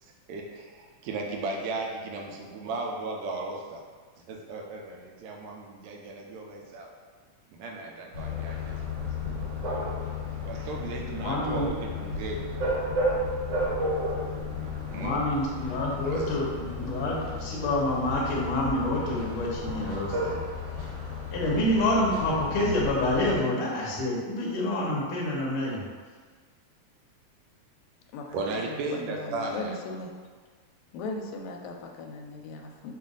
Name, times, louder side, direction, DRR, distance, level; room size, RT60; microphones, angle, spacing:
voice 1, 0.0-3.8 4.3-6.9 7.5-9.1 10.4-12.5 14.9-15.2 16.1-16.4 28.3-29.8, right 3 dB, 80° right, 1 dB, 1.8 m, -36 dB
sound 1, 8.1-23.4, left 2 dB, 55° right, 1.2 m, -33 dB
voice 2, 11.2-11.7 14.9-20.4 21.3-25.8, left 1 dB, 60° left, -4 dB, 1.5 m, -27 dB
voice 3, 28.6-30.1 30.9-33.0, left 3 dB, 80° left, 2 dB, 1.8 m, -38 dB
5.5 x 2.5 x 3.9 m, 1.5 s
omnidirectional pair, 3.3 m